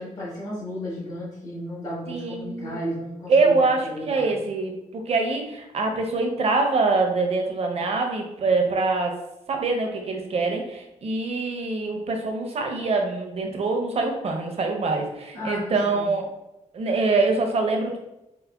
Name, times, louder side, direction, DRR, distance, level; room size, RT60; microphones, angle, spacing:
voice 1, 0.0-4.4 15.3-16.1, equal, 75° left, -8 dB, 1.3 m, -34 dB
voice 2, 2.1-2.8 3.3-9.1 9.5-16.3 16.7-18.0, right 3 dB, 50° right, 3 dB, 0.6 m, -24 dB
4.5 x 2.1 x 2.3 m, 0.92 s
wide cardioid pair, 110°, 13 cm